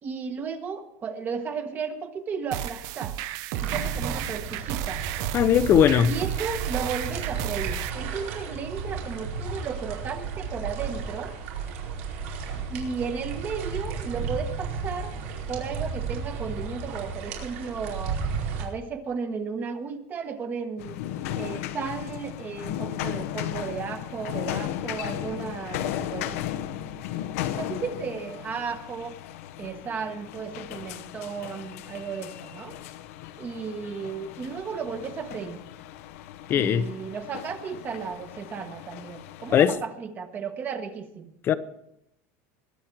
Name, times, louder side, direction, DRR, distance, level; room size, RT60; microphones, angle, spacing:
voice 1, 0.0-3.2 3.6-5.0 6.0-11.3 12.7-15.1 15.5-18.2 18.6-21.0 21.3-26.4 26.7-27.0 27.6-29.2 29.6-32.8 33.4-35.6 36.5-41.3, right 5 dB, 25° right, 1.3 m, -34 dB
sound 1, 2.5-7.9, right 13 dB, 55° right, 0.7 m, -34 dB
sound 2, 3.5-18.6, right 5 dB, 90° right, 4.6 m, -33 dB
voice 2, 5.3-6.1 36.5-36.9 39.5-39.7 41.5-41.6, left 9 dB, 30° left, 0.8 m, -19 dB
sound 3, 20.8-39.7, left 12 dB, 80° left, 1.0 m, -36 dB
22.0 x 8.9 x 4.6 m
cardioid pair, 165°, 7 cm